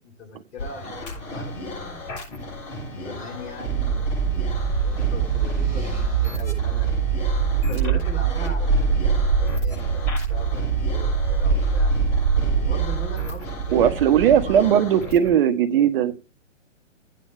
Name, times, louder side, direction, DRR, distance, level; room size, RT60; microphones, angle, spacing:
voice 1, 0.0-2.1 2.9-7.2 7.5-11.9 12.3-14.7, left 2 dB, 55° left, 4 dB, 5.3 m, -40 dB
sound 1, 0.6-15.4, left 2 dB, 35° left, 7.2 m, -36 dB
sound 2, 2.8-8.6, left 2 dB, 5° right, 5.5 m, -45 dB
Deep Dark Bass, 3.7-14.6, right 6 dB, 60° right, 0.9 m, -23 dB
voice 2, 13.7-16.1, right 9 dB, 45° right, 9 dB, 1.6 m, -18 dB
17.0 x 9.5 x 2.2 m, 0.25 s
figure-of-eight pair, 125°, 39 cm